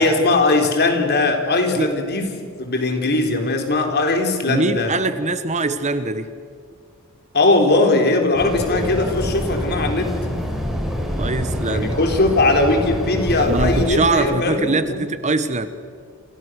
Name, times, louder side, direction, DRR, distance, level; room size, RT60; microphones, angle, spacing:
voice 1, 0.0-2.3 2.6-5.0 7.3-10.1 11.7-15.0, left 2 dB, 50° left, 4 dB, 4.1 m, -19 dB
voice 2, 4.5-6.3 11.2-11.9 13.4-15.7, right 2 dB, 35° right, 11 dB, 1.2 m, -22 dB
sound 1, 8.4-13.9, equal, ahead, 5.0 m, -26 dB
29.5 x 27.0 x 6.6 m, 2.1 s
head